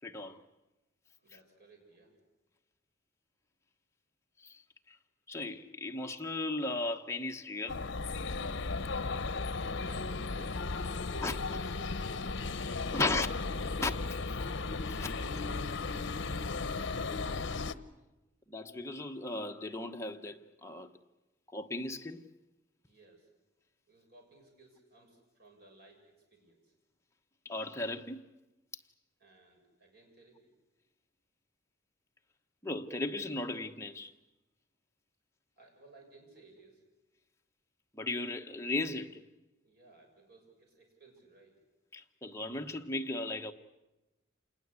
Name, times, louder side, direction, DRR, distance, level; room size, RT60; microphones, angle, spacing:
voice 1, 0.0-0.4 4.4-4.6 4.9-5.0 5.3-7.8 11.2-11.4 12.9-13.3 13.8-13.9 14.9-15.1 18.5-20.9 21.5-22.2 27.4-28.3 32.6-34.1 37.9-39.2 41.9-43.5, left 2 dB, 15° left, 1.1 m, -36 dB
voice 2, 1.2-2.1 9.8-11.1 11.5-12.6 12.9-13.4 14.4-14.6 15.1-16.7 22.9-23.3 23.9-26.7 29.2-30.5 35.6-36.8 39.6-41.6, right 2 dB, 55° right, 7.0 m, -59 dB
city broadcast, 7.7-17.7, left 3 dB, 65° left, 0.9 m, -35 dB
27.5 x 20.0 x 8.2 m
head